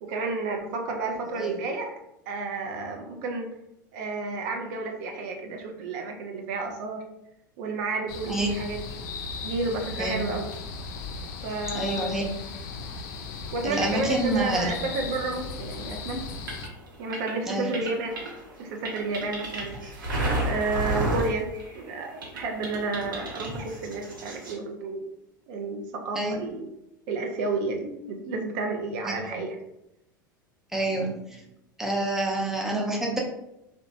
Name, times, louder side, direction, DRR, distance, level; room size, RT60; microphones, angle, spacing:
voice 1, 0.0-1.9 2.3-3.6 3.9-7.0 7.6-9.0 9.4-10.5 11.4-12.3 13.5-16.2 17.0-18.1 18.6-19.8 20.4-25.0 25.5-26.7 27.1-29.6, right 3 dB, 55° right, 3 dB, 0.5 m, -31 dB
sound 1, 8.1-16.7, left 5 dB, 60° left, 0.4 m, -37 dB
voice 2, 11.7-12.3 13.6-14.7 17.5-17.7 26.2-26.4 29.0-29.4 30.7-31.4 31.8-33.2, right 2 dB, 5° right, -1 dB, 0.6 m, -28 dB
sound 2, 15.7-21.9 22.2-24.5, right 1 dB, 80° right, 0.8 m, -32 dB
2.8 x 2.1 x 2.6 m, 0.85 s
figure-of-eight pair, 80°, 11 cm